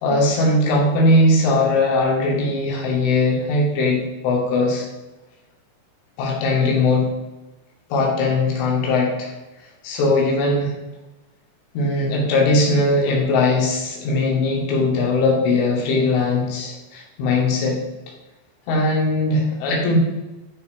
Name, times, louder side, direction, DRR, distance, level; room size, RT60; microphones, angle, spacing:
voice 1, 0.0-4.9 6.2-7.1 7.9-9.3 9.8-10.7 11.7-17.8 18.7-20.0, left 2 dB, 90° left, -3 dB, 4.7 m, -19 dB
11.5 x 5.7 x 5.3 m, 1.1 s
omnidirectional pair, 5.4 m